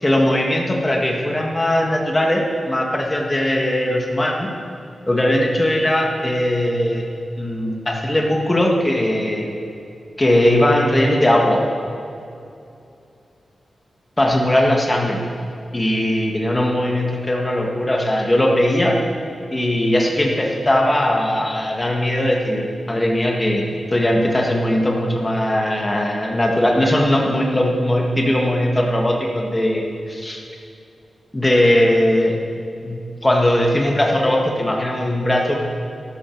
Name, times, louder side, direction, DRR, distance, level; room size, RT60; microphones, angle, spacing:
voice 1, 0.0-4.5 5.1-7.0 7.4-9.6 10.2-11.6 14.2-15.2 15.7-18.9 19.5-30.4 31.3-32.4 32.8-35.5, left 1 dB, 15° left, 0 dB, 1.7 m, -19 dB
13.5 x 13.0 x 4.6 m, 2.5 s
wide cardioid pair, 175°, 0 cm